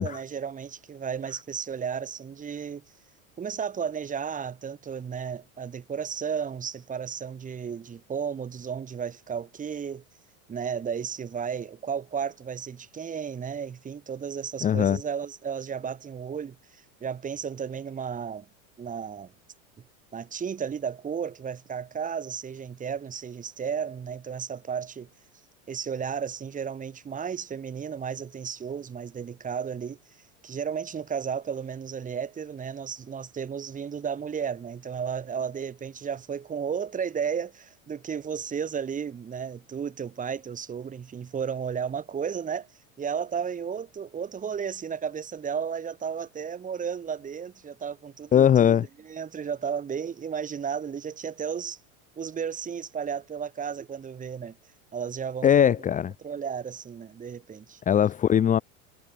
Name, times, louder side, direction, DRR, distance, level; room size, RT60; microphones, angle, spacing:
voice 1, 0.0-2.9 3.4-10.0 10.5-18.5 18.8-19.3 19.8-19.9 20.1-25.1 25.7-42.7 43.0-51.8 52.2-55.8 56.2-57.8, right 7 dB, 20° right, 4.9 m, -33 dB
voice 2, 14.6-15.0 48.3-48.8 55.4-56.1 57.9-58.6, left 9 dB, 20° left, 1.1 m, -20 dB
supercardioid pair, 150°, 41 cm